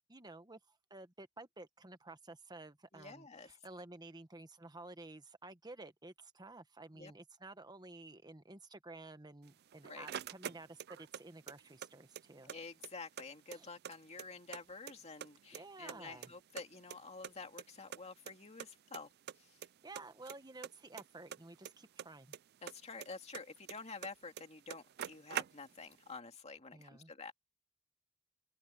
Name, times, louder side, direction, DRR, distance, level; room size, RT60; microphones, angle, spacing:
voice 1, 0.1-12.5 13.5-13.7 15.5-16.3 19.8-22.4 26.7-27.1, right 2 dB, 20° right, 1.3 m, -52 dB
voice 2, 2.9-3.5 6.9-7.1 9.8-10.1 12.4-19.1 19.4-19.6 22.6-27.3, left 4 dB, 30° left, 2.4 m, -49 dB
sound 1, 9.5-11.2 11.5-12.6 12.8-12.9 13.2-14.6 14.9-15.6 15.9-17.3 17.6-17.7 17.9-18.0 18.3-18.4 18.6-19.0 19.3-19.7 20.0-22.4 22.7-24.1 24.4-24.5 24.7-25.9, right 9 dB, 50° right, 0.4 m, -44 dB
open air
head